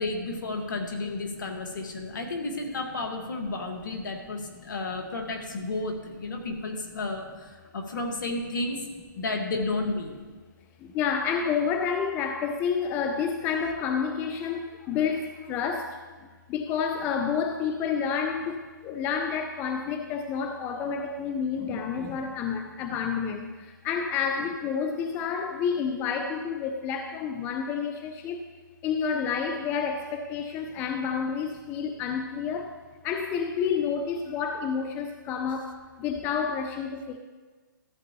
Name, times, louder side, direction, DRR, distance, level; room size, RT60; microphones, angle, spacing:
voice 1, 0.0-8.8 9.1-10.2, left 2 dB, 65° left, 1.7 m, -32 dB
voice 2, 10.8-16.0 16.5-28.4 28.8-32.8 33.0-37.2, left 6 dB, 15° left, 0.4 m, -29 dB
14.0 x 7.8 x 3.0 m
hypercardioid pair, 145°, 11 cm